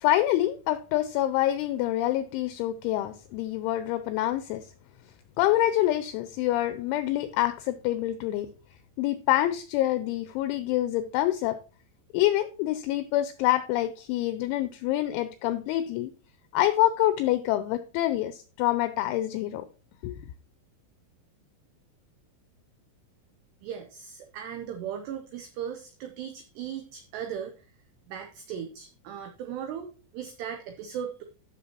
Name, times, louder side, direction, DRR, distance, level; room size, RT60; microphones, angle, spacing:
voice 1, 0.0-4.7 5.4-8.5 9.0-11.6 12.1-16.1 16.5-19.6 20.0-20.2, left 14 dB, 85° left, 2.7 m, -26 dB
voice 2, 23.6-27.5 28.1-31.2, right 8 dB, 85° right, 2.4 m, -37 dB
14.0 x 6.2 x 2.9 m
omnidirectional pair, 5.9 m